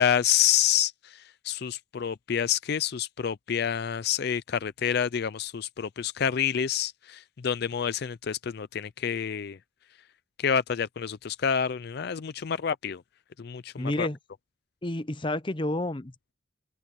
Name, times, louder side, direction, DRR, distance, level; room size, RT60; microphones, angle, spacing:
voice 1, 0.0-9.6 10.4-13.0 13.4-14.1, left 8 dB, 55° left, 0.4 m, -28 dB
voice 2, 13.8-14.2 14.8-16.3, left 1 dB, 25° left, 0.8 m, -30 dB
open air
head